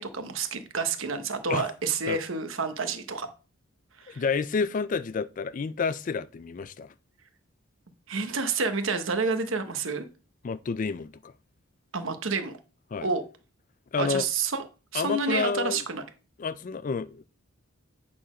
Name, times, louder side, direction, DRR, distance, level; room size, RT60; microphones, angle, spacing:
voice 1, 0.0-3.3 4.0-4.2 8.1-10.0 11.9-12.6 13.0-13.2 14.0-14.6 14.9-16.0, right 4 dB, 70° right, 1.1 m, -29 dB
voice 2, 4.1-6.9 10.4-11.3 12.9-13.1 13.9-14.3 14.9-15.8 16.4-17.2, left 5 dB, 40° left, 0.3 m, -29 dB
8.7 x 4.2 x 5.0 m
head